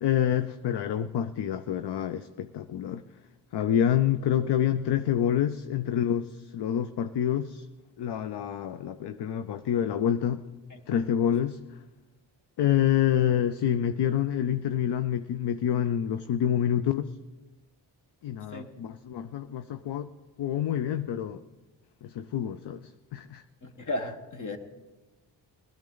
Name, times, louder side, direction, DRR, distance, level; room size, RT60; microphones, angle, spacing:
voice 1, 0.0-3.0 3.5-7.7 8.0-10.4 10.9-11.6 12.6-17.1 18.2-20.1 20.4-21.4 22.0-23.4, left 10 dB, 65° left, 0.6 m, -27 dB
voice 2, 23.6-24.6, left 1 dB, 40° left, 1.6 m, -34 dB
17.5 x 12.5 x 3.9 m
cardioid pair, 60°, 44 cm